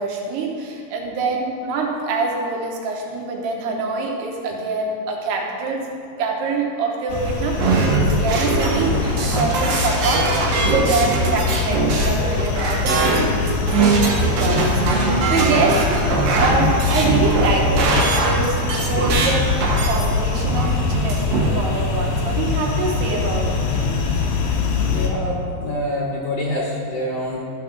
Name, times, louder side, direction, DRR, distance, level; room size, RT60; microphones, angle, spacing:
voice 1, 0.0-5.8 6.2-10.3 10.6-18.6 18.8-19.5 19.8-23.7, right 3 dB, 90° right, 0 dB, 3.2 m, -25 dB
sound 1, 7.1-25.1, left 4 dB, 70° left, 2.3 m, -24 dB
sound 2, 7.6-21.5, right 2 dB, 70° right, 3.2 m, -21 dB
voice 2, 24.8-27.4, left 1 dB, 90° left, -3 dB, 1.3 m, -26 dB
13.5 x 4.7 x 6.0 m, 2.3 s
omnidirectional pair, 4.5 m